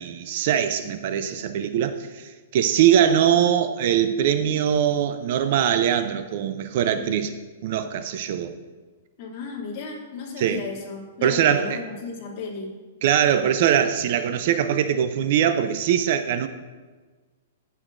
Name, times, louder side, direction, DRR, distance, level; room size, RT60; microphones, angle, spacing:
voice 1, 0.0-7.3 7.6-8.5 10.4-10.6 11.2-11.8 13.0-16.5, right 9 dB, 50° right, 0.5 m, -22 dB
voice 2, 9.2-12.8, left 4 dB, 35° left, 2.5 m, -35 dB
17.5 x 6.4 x 2.6 m
hypercardioid pair, 160°, 0 cm